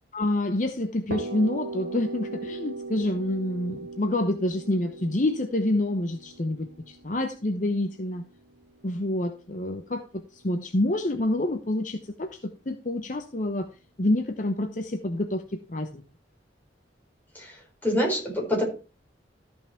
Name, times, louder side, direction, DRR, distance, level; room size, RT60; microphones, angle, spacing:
voice 1, 0.1-8.3 8.8-13.7 14.0-16.0, left 1 dB, 40° left, 6 dB, 0.8 m, -27 dB
sound 1, 1.1-8.8, right 3 dB, 70° right, 1.4 m, -38 dB
voice 2, 17.3-18.6, equal, 10° left, -2 dB, 4.4 m, -26 dB
13.5 x 5.7 x 4.4 m, 0.33 s
head